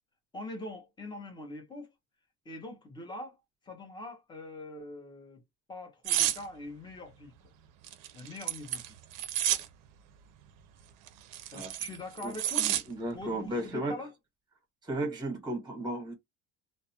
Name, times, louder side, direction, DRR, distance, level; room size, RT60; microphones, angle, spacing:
voice 1, 0.3-1.9 2.4-3.4 3.6-5.4 5.7-7.5 8.1-9.0 11.5-12.7 13.1-14.1, left 2 dB, 10° left, 0.6 m, -43 dB
sound 1, 6.1-6.4 7.8-9.7 11.1-12.8 13.2-13.5, right 12 dB, 60° right, 0.5 m, -30 dB
voice 2, 12.2-14.0 14.8-16.1, right 1 dB, 10° right, 1.0 m, -35 dB
2.2 x 2.1 x 2.7 m
cardioid pair, 175°, 36 cm